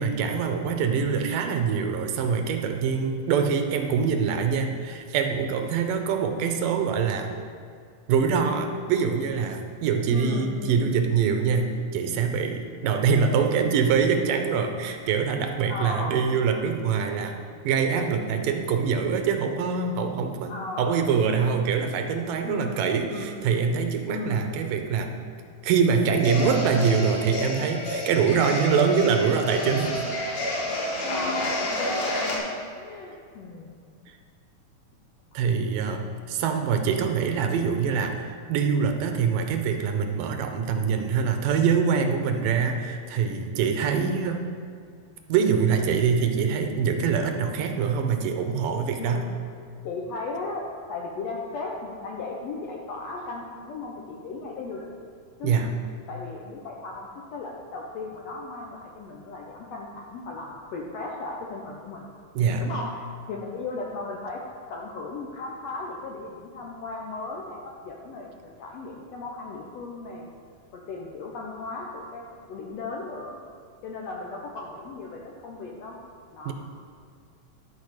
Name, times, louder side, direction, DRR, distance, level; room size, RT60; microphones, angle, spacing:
voice 1, 0.0-7.3 8.1-17.4 17.6-25.1 25.6-30.0 35.3-44.4 45.3-49.3 55.4-55.7 62.4-62.7 76.5-76.6, right 6 dB, 80° right, 5 dB, 2.4 m, -24 dB
voice 2, 10.1-10.9 15.7-16.2 20.5-20.9 22.4-23.4 24.1-24.5 31.0-32.5 32.7-33.7 49.0-49.4 49.8-54.9 55.4-55.6 56.1-62.1 62.6-64.4 64.7-70.3 70.7-73.4 73.8-76.0 76.3-76.5, left 3 dB, 75° left, -1 dB, 1.6 m, -36 dB
sound 1, 26.1-32.4, left 1 dB, 55° left, 2.9 m, -30 dB
12.0 x 4.8 x 6.5 m, 2.2 s
omnidirectional pair, 3.9 m